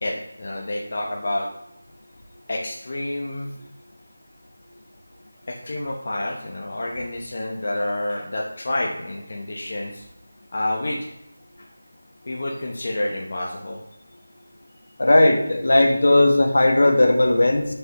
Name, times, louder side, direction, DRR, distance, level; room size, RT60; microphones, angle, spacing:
voice 1, 0.0-1.5 2.5-3.5 5.5-10.0 10.5-11.1 11.6-11.7 12.3-13.8, left 1 dB, 35° left, -1 dB, 0.8 m, -28 dB
voice 2, 15.0-17.6, left 1 dB, 60° left, 3 dB, 1.3 m, -17 dB
9.6 x 5.4 x 2.9 m, 0.85 s
figure-of-eight pair, 180°, 0 cm